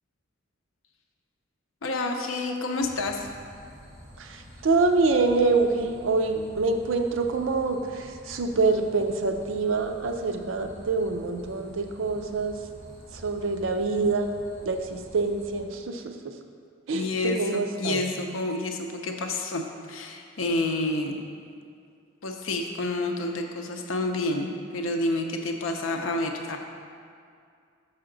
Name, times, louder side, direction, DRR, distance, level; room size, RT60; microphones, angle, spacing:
voice 1, 1.8-3.3 16.9-21.2 22.2-26.6, left 2 dB, 75° left, 3 dB, 0.6 m, -29 dB
sound 1, 2.8-15.6, equal, 35° right, 1.4 m, -48 dB
voice 2, 4.2-12.6 13.1-14.3 14.7-16.3 16.9-18.0, right 3 dB, 70° right, 6 dB, 0.5 m, -26 dB
5.6 x 5.5 x 3.8 m, 2.3 s
head